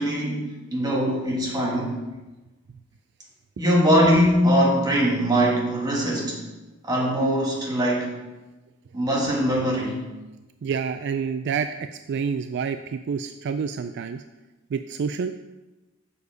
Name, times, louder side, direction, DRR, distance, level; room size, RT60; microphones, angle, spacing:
voice 1, 0.0-2.0 3.6-6.4 6.8-8.1 8.9-10.0, equal, 20° right, -3 dB, 1.8 m, -22 dB
voice 2, 10.6-14.2 14.7-15.4, right 6 dB, 55° right, 9 dB, 0.3 m, -28 dB
7.0 x 6.6 x 4.9 m, 1.1 s
head